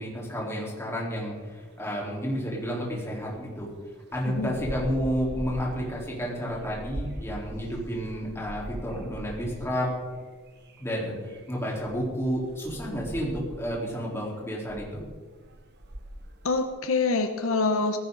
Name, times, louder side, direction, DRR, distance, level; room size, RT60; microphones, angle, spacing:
voice 1, 0.0-3.7 4.1-9.9 10.8-11.1 11.5-15.0, equal, 10° left, -4 dB, 4.3 m, -31 dB
Small town Ambience, 1.3-16.7, right 1 dB, 50° right, 1.4 m, -42 dB
voice 2, 4.2-4.6 16.4-18.0, left 3 dB, 75° left, 7 dB, 1.1 m, -25 dB
18.0 x 16.0 x 4.2 m, 1.4 s
head